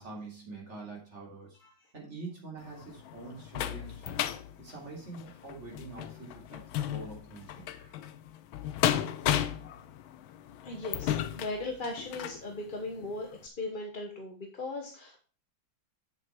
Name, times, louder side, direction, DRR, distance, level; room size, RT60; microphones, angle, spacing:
voice 1, 0.0-1.6 1.9-4.2 4.6-7.6, right 3 dB, 35° right, -2 dB, 3.4 m, -45 dB
sound 1, 2.6-12.4 13.0-13.1 13.5-13.6, left 11 dB, 85° left, 1.5 m, -34 dB
voice 2, 7.7-8.1 10.6-15.2, left 2 dB, 30° left, 1 dB, 1.0 m, -38 dB
8.1 x 7.0 x 4.6 m, 0.39 s
omnidirectional pair, 2.2 m